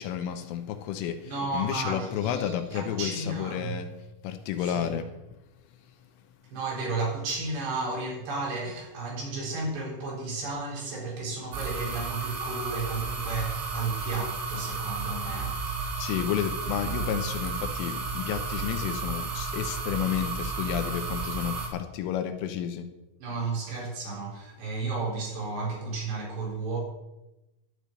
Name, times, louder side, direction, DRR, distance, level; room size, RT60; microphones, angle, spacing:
voice 1, 0.0-3.9 4.2-5.1 16.0-22.9, left 10 dB, 85° left, 8 dB, 3.3 m, -31 dB
voice 2, 1.2-3.8 4.6-5.0 6.5-15.6 23.2-26.8, right 3 dB, 60° right, -4 dB, 6.0 m, -33 dB
sound 1, 11.5-21.7, right 4 dB, 85° right, 5.6 m, -33 dB
12.5 x 6.8 x 9.0 m, 0.98 s
omnidirectional pair, 6.0 m